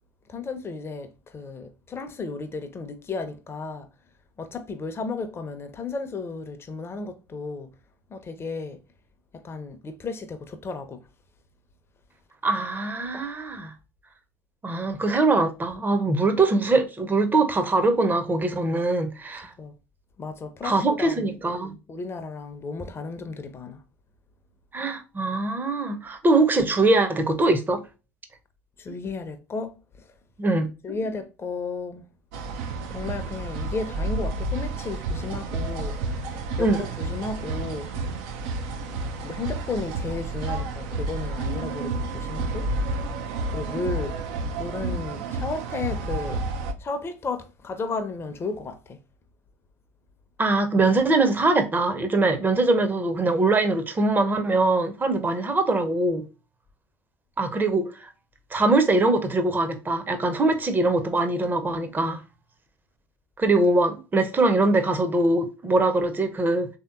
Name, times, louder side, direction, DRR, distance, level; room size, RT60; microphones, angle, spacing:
voice 1, 0.3-3.9 4.4-7.7 8.1-8.8 9.3-11.0 19.6-19.7 20.2-21.3 21.9-23.8 28.8-30.1 30.8-32.1 32.9-37.9 39.2-42.7 43.5-44.3 44.6-46.4 46.8-49.0, left 3 dB, 30° left, 0.6 m, -34 dB
voice 2, 12.4-13.7 14.6-19.5 20.6-21.7 24.7-27.8 30.4-30.7 36.6-36.8 50.4-56.2 57.4-58.1 58.5-62.2 63.4-66.7, right 2 dB, 20° right, 0.7 m, -22 dB
sound 1, 32.3-46.7, right 2 dB, 70° right, 0.5 m, -30 dB
3.3 x 2.8 x 2.4 m
hypercardioid pair, 60°, 9 cm